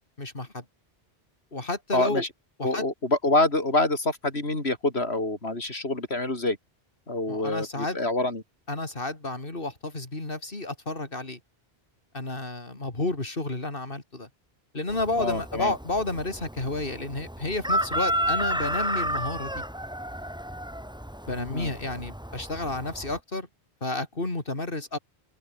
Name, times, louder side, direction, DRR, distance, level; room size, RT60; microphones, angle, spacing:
voice 1, 0.2-0.6 1.5-2.2 2.6-2.8 7.3-8.0 8.7-11.4 12.1-14.3 14.7-19.6 21.3-23.5 23.8-25.0, left 2 dB, 60° left, 3.9 m, -31 dB
voice 2, 1.9-2.3 2.6-6.6 7.1-8.4 15.2-15.7 21.5-21.7, left 2 dB, 80° left, 5.0 m, -26 dB
Chicken rooster, 14.9-23.2, equal, 5° right, 1.7 m, -32 dB
omnidirectional pair, 1.1 m